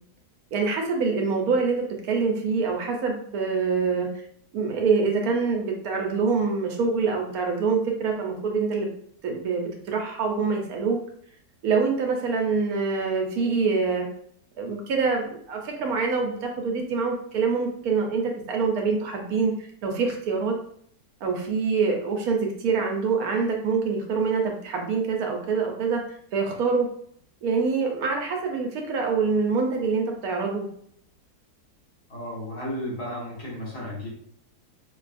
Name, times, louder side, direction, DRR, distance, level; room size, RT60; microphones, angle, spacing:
voice 1, 0.5-4.1 4.5-8.9 9.2-11.0 11.6-14.1 14.6-18.2 18.5-19.5 19.8-20.5 21.2-26.0 26.3-26.9 27.4-30.7, right 4 dB, 70° right, 1 dB, 1.0 m, -25 dB
voice 2, 32.1-34.1, left 1 dB, 75° left, -6 dB, 1.7 m, -33 dB
4.7 x 2.3 x 2.5 m, 0.65 s
omnidirectional pair, 1.7 m